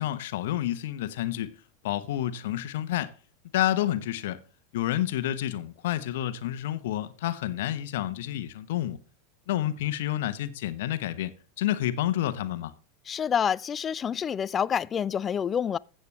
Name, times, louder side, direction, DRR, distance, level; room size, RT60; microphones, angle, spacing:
voice 1, 0.0-1.5 1.8-3.1 3.5-4.4 4.7-9.0 9.5-11.3 11.6-12.7, left 13 dB, 65° left, 1.0 m, -29 dB
voice 2, 13.1-15.8, left 8 dB, 30° left, 0.4 m, -27 dB
15.0 x 7.9 x 3.3 m
figure-of-eight pair, 85°, 0 cm